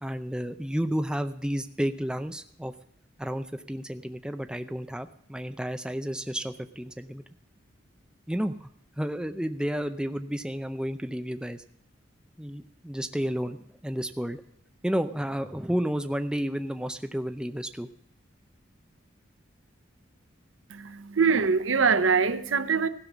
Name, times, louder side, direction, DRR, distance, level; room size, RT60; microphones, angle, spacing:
voice 1, 0.0-2.7 3.2-7.2 8.3-8.7 9.0-11.6 12.4-13.6 13.8-14.4 14.8-17.9, equal, 5° right, 0.5 m, -31 dB
voice 2, 20.7-22.9, right 5 dB, 90° right, 0.8 m, -23 dB
16.0 x 5.5 x 7.2 m
head